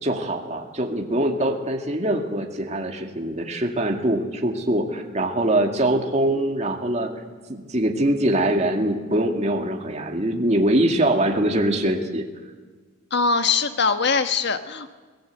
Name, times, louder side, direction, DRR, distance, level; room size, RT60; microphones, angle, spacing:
voice 1, 0.0-7.1 7.5-12.2, right 1 dB, 35° right, 3 dB, 2.2 m, -23 dB
voice 2, 13.1-14.9, left 4 dB, 55° left, 9 dB, 1.3 m, -22 dB
24.0 x 18.0 x 8.3 m, 1.4 s
head